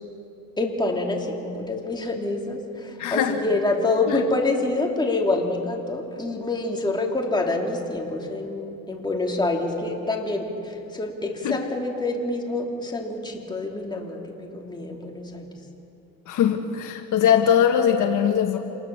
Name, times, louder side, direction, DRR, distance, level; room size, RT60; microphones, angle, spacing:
voice 1, 0.6-15.5, left 2 dB, 15° left, 0 dB, 3.4 m, -27 dB
voice 2, 3.0-3.3 4.1-4.2 11.4-11.6 16.3-18.6, left 9 dB, 65° left, 4 dB, 1.6 m, -21 dB
27.5 x 19.5 x 7.3 m, 2.8 s
cardioid pair, 105°, 33 cm